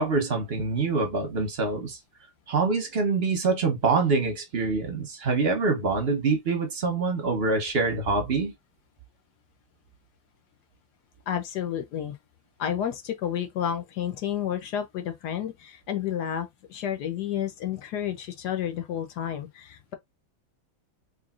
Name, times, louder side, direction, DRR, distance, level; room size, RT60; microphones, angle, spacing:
voice 1, 0.0-2.0 2.5-8.5, right 4 dB, 45° right, 0.8 m, -25 dB
voice 2, 11.3-12.2 12.6-19.9, left 9 dB, 65° left, 1.1 m, -31 dB
3.8 x 3.2 x 2.4 m
omnidirectional pair, 2.1 m